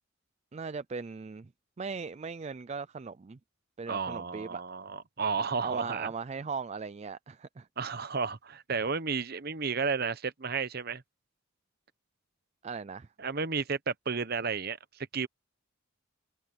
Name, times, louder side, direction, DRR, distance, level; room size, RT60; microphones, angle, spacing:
voice 1, 0.5-1.5 1.8-3.4 3.8-4.6 5.6-7.7 12.6-13.1, right 5 dB, 30° right, 0.4 m, -38 dB
voice 2, 3.9-6.1 7.8-11.0 13.2-15.3, right 5 dB, 50° right, 0.9 m, -32 dB
head